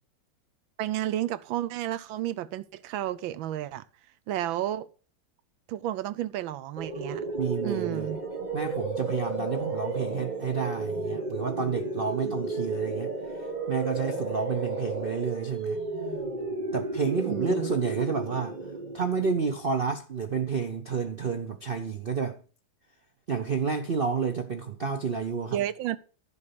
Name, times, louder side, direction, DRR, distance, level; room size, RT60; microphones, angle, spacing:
voice 1, 0.8-3.8 4.3-4.9 5.7-7.2 7.6-8.2 12.2-12.3 17.3-17.7 25.5-26.0, right 13 dB, 80° right, 1.4 m, -31 dB
sound 1, 6.8-19.6, right 3 dB, 25° right, 1.3 m, -33 dB
voice 2, 7.3-8.1 8.5-13.1 13.7-15.8 16.7-18.6 18.9-22.4 23.3-25.6, right 5 dB, 65° right, 0.5 m, -30 dB
11.0 x 5.4 x 6.9 m
omnidirectional pair, 2.1 m